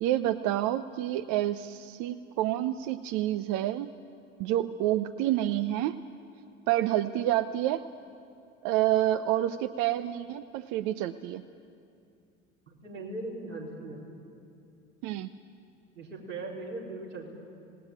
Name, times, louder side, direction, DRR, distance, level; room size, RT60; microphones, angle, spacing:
voice 1, 0.0-3.9 4.4-6.0 6.7-7.8 8.6-11.4 15.0-15.3, right 13 dB, 50° right, 11 dB, 0.8 m, -28 dB
voice 2, 12.7-14.0 15.9-17.3, right 2 dB, 85° right, -5 dB, 4.7 m, -39 dB
26.5 x 19.0 x 9.1 m, 2.5 s
figure-of-eight pair, 65°, 37 cm